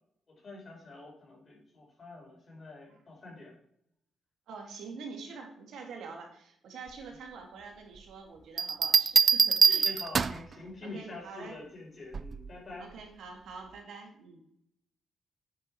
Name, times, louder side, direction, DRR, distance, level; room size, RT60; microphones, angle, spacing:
voice 1, 0.3-3.5 9.7-12.9, left 2 dB, 35° left, -2 dB, 5.2 m, -46 dB
voice 2, 4.5-9.9 10.8-11.6 12.8-14.5, right 4 dB, 75° right, 2 dB, 2.8 m, -45 dB
Bell, 8.6-10.5 12.1-12.5, right 5 dB, 35° right, 0.4 m, -24 dB
9.7 x 8.0 x 4.9 m, 0.69 s
cardioid pair, 130°, 0 cm